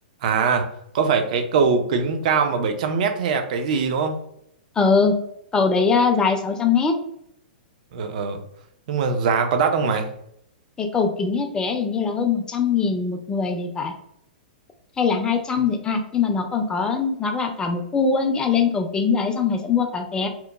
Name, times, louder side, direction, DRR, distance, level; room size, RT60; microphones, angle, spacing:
voice 1, 0.2-0.7 0.9-4.2 7.9-8.4 8.9-10.1, right 5 dB, 50° right, 6 dB, 0.4 m, -22 dB
voice 2, 4.8-5.1 5.5-6.9 10.8-13.9 15.0-20.3, left 5 dB, 15° left, 5 dB, 0.4 m, -22 dB
2.9 x 2.1 x 2.2 m, 0.73 s
figure-of-eight pair, 110°, 5 cm